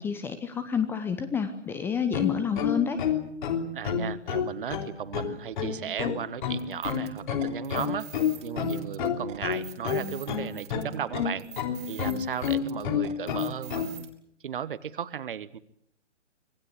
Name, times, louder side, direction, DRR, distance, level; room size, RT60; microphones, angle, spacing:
voice 1, 0.0-3.0, left 6 dB, 5° left, 9 dB, 0.9 m, -29 dB
sound 1, 2.0-13.9, left 8 dB, 40° left, 3.5 m, -29 dB
voice 2, 3.7-8.1 8.4-11.5 11.9-13.8 14.4-15.6, right 8 dB, 45° right, 15 dB, 1.4 m, -35 dB
sound 2, 6.6-14.1, right 12 dB, 20° right, 2.5 m, -46 dB
26.0 x 19.0 x 8.3 m, 0.72 s
figure-of-eight pair, 135°, 36 cm